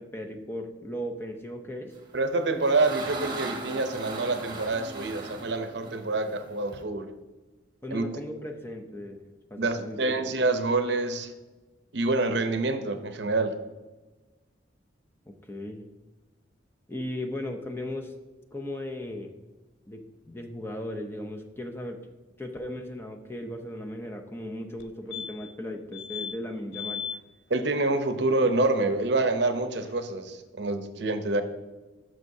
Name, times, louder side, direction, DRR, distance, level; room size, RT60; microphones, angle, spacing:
voice 1, 0.0-1.9 7.8-9.2 9.5-10.2 15.4-15.8 16.9-18.1 18.5-19.3 19.9-20.0 20.3-22.0 22.4-27.0, left 1 dB, 10° left, 3 dB, 0.6 m, -37 dB
sound 1, 2.1-6.8, right 3 dB, 25° right, 1.1 m, -38 dB
voice 2, 2.1-7.1 7.9-8.0 9.6-11.3 11.9-13.5 27.5-31.4, right 2 dB, 65° right, 8 dB, 0.7 m, -27 dB
sound 2, 24.8-24.9 25.1-25.6 25.9-26.3 26.7-27.2 29.6-29.7 29.8-29.9, left 8 dB, 75° left, 0.5 m, -36 dB
11.0 x 6.1 x 2.7 m, 1.2 s
head